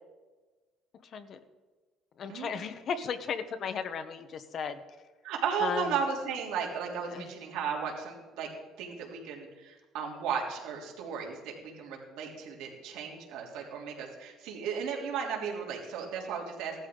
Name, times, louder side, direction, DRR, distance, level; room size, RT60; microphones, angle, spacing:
voice 1, 1.0-1.4 2.2-4.8 5.6-6.0 7.1-7.3, left 6 dB, 40° left, 10 dB, 0.9 m, -35 dB
voice 2, 5.2-8.5 8.8-16.9, right 6 dB, 80° right, -2 dB, 3.3 m, -35 dB
17.5 x 13.0 x 3.9 m, 1.3 s
cardioid pair, 150°, 0 cm